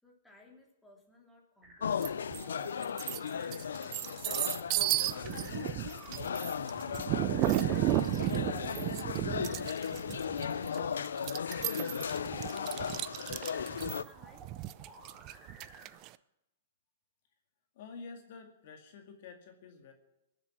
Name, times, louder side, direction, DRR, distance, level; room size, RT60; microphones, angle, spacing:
voice 1, 0.0-5.9 11.6-14.5, left 2 dB, 5° left, -2 dB, 3.2 m, -61 dB
sound 1, 1.6-16.0, right 3 dB, 15° right, 3.7 m, -54 dB
sound 2, 1.8-14.0, left 7 dB, 85° left, 0.5 m, -36 dB
sound 3, 2.0-2.4 2.8-16.1, right 17 dB, 40° right, 0.5 m, -34 dB
voice 2, 17.7-19.9, left 4 dB, 60° left, 4 dB, 2.1 m, -49 dB
21.0 x 7.5 x 6.2 m, 0.91 s
hypercardioid pair, 135°, 0 cm